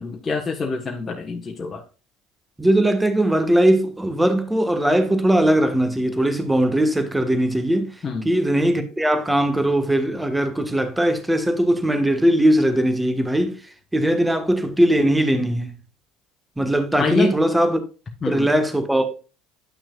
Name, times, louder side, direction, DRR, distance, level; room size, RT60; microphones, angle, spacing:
voice 1, 0.0-1.8 8.0-8.3 17.0-17.3 18.2-18.5, left 4 dB, 30° left, 1.4 m, -26 dB
voice 2, 2.6-8.0 8.2-15.7 16.6-17.8 18.3-19.2, right 1 dB, 10° right, 1.5 m, -20 dB
10.0 x 6.1 x 2.4 m
hypercardioid pair, 75°, 0 cm